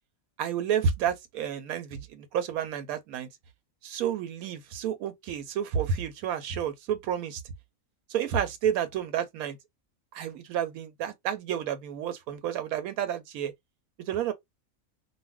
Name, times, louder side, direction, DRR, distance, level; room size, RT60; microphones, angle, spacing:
voice 1, 0.4-3.3 3.8-7.4 8.1-9.6 10.1-13.5 14.0-14.3, right 8 dB, 90° right, 1.0 m, -30 dB
2.5 x 2.2 x 3.3 m
omnidirectional pair, 1.5 m